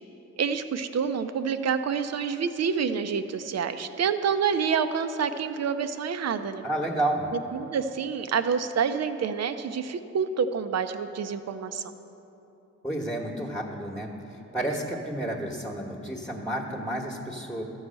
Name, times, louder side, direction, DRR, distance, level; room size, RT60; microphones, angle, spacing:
voice 1, 0.4-6.6 7.5-11.8, right 6 dB, 60° right, 9 dB, 0.6 m, -28 dB
voice 2, 6.6-7.3 12.8-17.6, right 1 dB, 5° left, -2 dB, 1.2 m, -31 dB
13.0 x 4.8 x 7.6 m, 3.0 s
cardioid pair, 65°, 29 cm